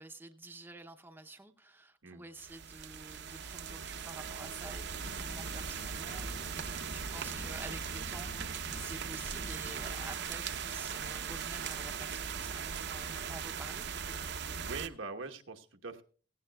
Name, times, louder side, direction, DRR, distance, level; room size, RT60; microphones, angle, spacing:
voice 1, 0.0-13.8, right 2 dB, 10° right, 6 dB, 0.7 m, -50 dB
sound 1, 2.4-14.9, right 6 dB, 60° right, 0.7 m, -39 dB
Engine, 5.0-10.2, left 2 dB, 40° left, 0.5 m, -50 dB
voice 2, 14.5-16.0, right 4 dB, 85° right, 5 dB, 1.1 m, -43 dB
16.5 x 16.0 x 2.3 m, 0.42 s
head